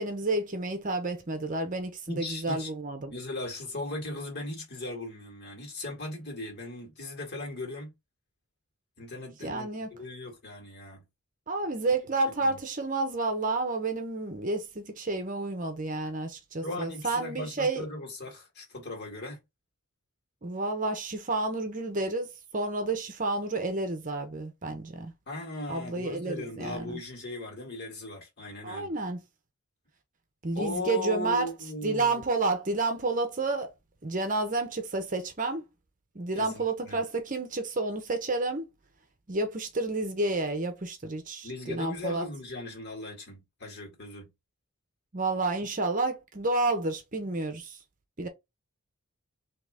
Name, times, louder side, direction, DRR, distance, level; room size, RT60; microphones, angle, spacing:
voice 1, 0.0-3.1 9.4-9.9 11.5-17.8 20.4-25.1 25.7-27.0 28.6-29.2 30.4-31.5 31.8-33.7 34.0-35.6 36.1-38.7 39.3-42.2 45.1-47.8 48.2-48.3, right 2 dB, 35° right, 0.8 m, -30 dB
voice 2, 2.1-2.7 3.1-7.9 9.0-11.0 11.8-11.9 12.4-12.6 16.6-19.4 25.3-28.9 30.6-32.2 36.3-37.0 41.4-44.3, left 2 dB, 50° left, 1.9 m, -38 dB
3.8 x 3.0 x 3.5 m
head